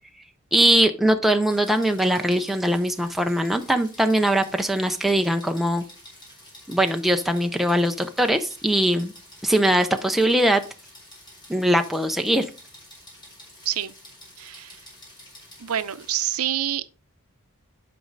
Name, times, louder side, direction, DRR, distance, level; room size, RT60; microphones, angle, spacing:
voice 1, 0.5-5.8 6.7-9.1 9.4-10.6 11.5-12.5, right 1 dB, ahead, 0.5 m, -21 dB
sound 1, 1.5-16.4, left 1 dB, 20° left, 4.3 m, -48 dB
voice 2, 14.4-14.8 15.6-16.9, right 11 dB, 80° right, 0.6 m, -27 dB
11.0 x 5.2 x 3.9 m
head